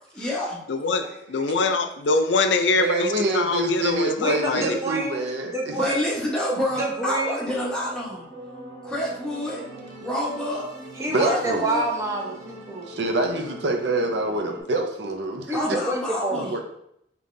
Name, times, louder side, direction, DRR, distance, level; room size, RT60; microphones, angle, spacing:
voice 1, 0.2-0.6 5.7-8.3 8.8-9.6 10.0-10.7 11.1-11.8 15.5-16.5, left 1 dB, 5° left, -6 dB, 1.1 m, -28 dB
voice 2, 0.7-4.8, left 3 dB, 75° left, 7 dB, 0.5 m, -24 dB
voice 3, 2.8-5.9 11.1-11.6 12.9-15.8 16.3-16.6, right 2 dB, 70° right, 4 dB, 0.7 m, -26 dB
voice 4, 4.2-6.1 6.8-7.6 11.0-12.9 13.2-13.4 15.5-16.5, right 2 dB, 15° right, -2 dB, 0.8 m, -28 dB
sound 1, 7.5-14.6, right 1 dB, 50° right, 1.4 m, -42 dB
5.2 x 3.0 x 2.6 m, 0.74 s
head